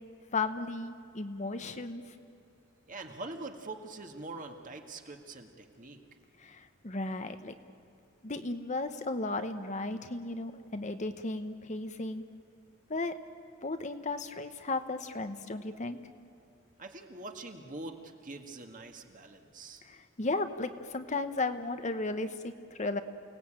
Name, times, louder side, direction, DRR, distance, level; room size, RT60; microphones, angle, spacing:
voice 1, 0.3-2.1 6.4-7.5 8.2-12.2 12.9-13.2 13.6-16.0 19.8-23.0, left 3 dB, 35° left, 9 dB, 0.9 m, -35 dB
voice 2, 2.9-6.0 16.8-19.8, right 2 dB, 40° right, 4 dB, 1.8 m, -44 dB
29.0 x 18.0 x 8.9 m, 2.5 s
head